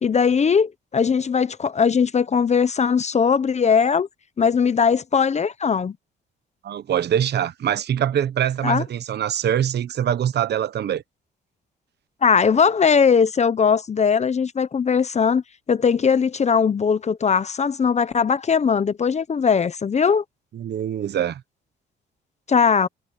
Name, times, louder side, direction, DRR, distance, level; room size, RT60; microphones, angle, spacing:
voice 1, 0.0-4.1 4.4-5.9 8.6-8.8 12.2-15.4 15.7-20.2 22.5-22.9, left 6 dB, 35° left, 0.8 m, -19 dB
voice 2, 6.6-11.0 20.5-21.4, right 9 dB, 60° right, 1.0 m, -23 dB
cardioid pair, 90°, 20 cm